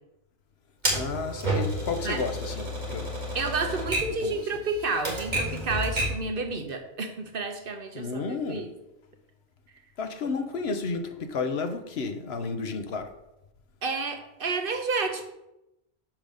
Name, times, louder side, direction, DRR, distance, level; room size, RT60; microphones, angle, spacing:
Typewriter, 0.8-6.3, right 1 dB, 40° right, 2.2 m, -31 dB
voice 1, 0.9-3.2 4.2-4.3 7.9-8.7 10.0-13.2, left 4 dB, 75° left, 1.1 m, -32 dB
voice 2, 3.3-8.7 10.2-10.3 13.8-15.3, right 3 dB, 60° right, 1.1 m, -30 dB
6.2 x 5.1 x 6.4 m
omnidirectional pair, 1.1 m